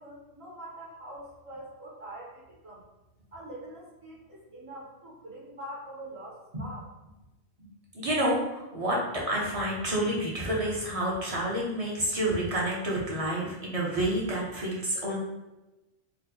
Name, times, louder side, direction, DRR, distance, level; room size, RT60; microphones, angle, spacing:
voice 1, 0.0-2.8 3.3-6.9, right 1 dB, 55° right, -6 dB, 1.2 m, -44 dB
voice 2, 7.9-15.2, right 1 dB, 40° right, -4 dB, 0.6 m, -29 dB
4.2 x 2.2 x 2.7 m, 1.0 s
omnidirectional pair, 1.3 m